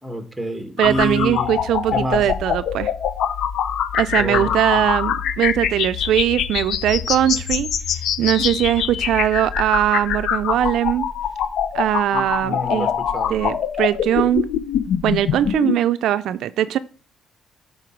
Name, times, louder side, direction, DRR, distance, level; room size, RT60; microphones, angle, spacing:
voice 1, 0.0-1.6 1.9-2.2 4.1-4.8 12.1-13.4, left 1 dB, 5° right, 6 dB, 1.8 m, -28 dB
sound 1, 0.8-15.8, left 9 dB, 75° left, 0.6 m, -24 dB
voice 2, 0.8-2.9 3.9-7.7 8.2-11.1 11.7-12.9 13.3-14.5 15.0-16.8, right 11 dB, 80° right, 13 dB, 0.4 m, -20 dB
12.5 x 4.3 x 4.6 m, 0.41 s
cardioid pair, 90°, 0 cm